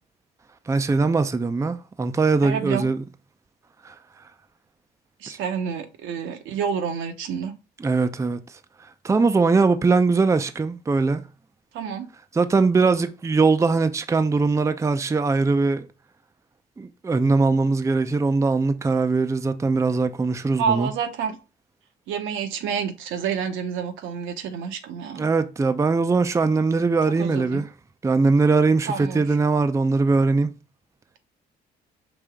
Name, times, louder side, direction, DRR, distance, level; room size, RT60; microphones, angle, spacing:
voice 1, 0.7-3.0 3.8-3.9 5.3-5.4 7.8-8.4 9.0-11.2 12.3-15.9 16.8-20.9 25.2-27.7 28.0-30.5, right 4 dB, 15° right, 0.4 m, -21 dB
voice 2, 2.4-2.9 5.2-7.5 11.7-12.1 20.6-21.4 22.1-25.3 27.2-27.6 28.9-29.2, right 7 dB, 80° right, 0.8 m, -28 dB
5.1 x 2.8 x 3.5 m
supercardioid pair, 70°, 20 cm